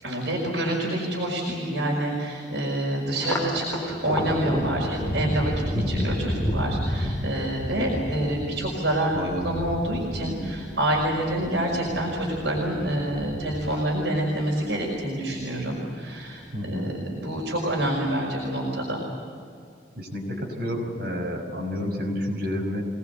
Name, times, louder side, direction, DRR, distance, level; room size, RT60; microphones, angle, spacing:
voice 1, 0.0-5.5 5.9-19.0, right 1 dB, 75° right, -2 dB, 5.4 m, -27 dB
Thunder, 3.1-15.8 16.2-17.0 17.3-18.2, equal, 15° left, 2.7 m, -32 dB
voice 2, 5.7-6.1 16.5-16.9 20.0-22.8, left 1 dB, 55° right, 1 dB, 6.0 m, -30 dB
25.5 x 20.0 x 8.2 m, 2.4 s
head